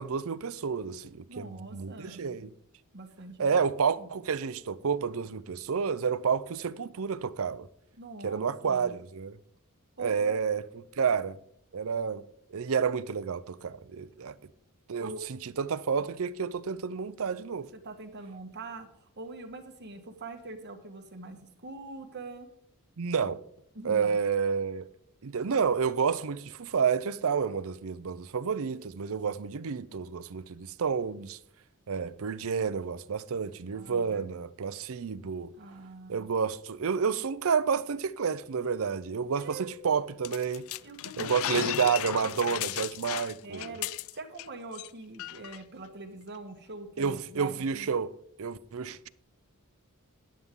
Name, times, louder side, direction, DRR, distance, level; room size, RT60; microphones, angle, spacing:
voice 1, 0.0-2.5 3.4-7.7 8.2-9.4 10.0-11.4 11.7-12.2 12.5-14.4 14.9-17.7 23.0-23.4 23.8-24.9 25.2-31.4 31.9-35.5 36.1-40.7 41.2-43.8 47.0-48.1 48.4-49.1, right 6 dB, 65° right, 0.6 m, -30 dB
voice 2, 1.3-2.5 2.9-3.6 4.0-4.1 8.0-9.0 10.0-10.4 15.0-15.2 17.7-22.5 23.7-24.2 33.7-34.3 35.6-36.3 39.4-39.8 40.8-41.7 43.4-48.0, right 3 dB, 50° right, 1.5 m, -44 dB
sound 1, 40.2-44.5 44.7-44.9 45.2-45.6, left 13 dB, 65° left, 0.3 m, -35 dB
12.5 x 9.7 x 3.8 m
head